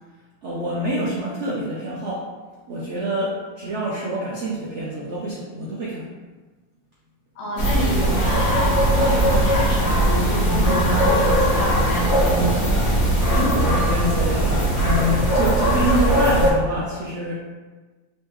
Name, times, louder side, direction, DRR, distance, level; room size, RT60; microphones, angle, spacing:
voice 1, 0.4-2.3 2.7-6.1 13.3-17.4, equal, 85° right, -6 dB, 0.6 m, -26 dB
voice 2, 7.4-12.6, right 2 dB, 70° left, -5 dB, 1.7 m, -28 dB
sound 1, 7.6-16.5, right 1 dB, 40° left, 1.5 m, -19 dB
4.0 x 3.6 x 3.0 m, 1.3 s
omnidirectional pair, 2.2 m